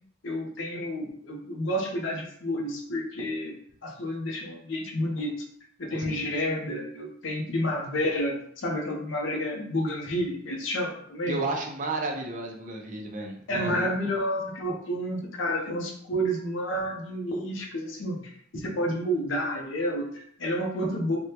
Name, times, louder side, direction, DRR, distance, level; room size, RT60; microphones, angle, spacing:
voice 1, 0.2-3.5 3.8-5.4 5.8-11.4 13.5-18.2 18.5-21.2, equal, 80° left, 0 dB, 0.7 m, -30 dB
voice 2, 5.9-6.3 11.3-13.9 18.5-18.6, right 2 dB, 45° right, 1 dB, 0.6 m, -33 dB
3.4 x 2.2 x 2.8 m, 0.65 s
head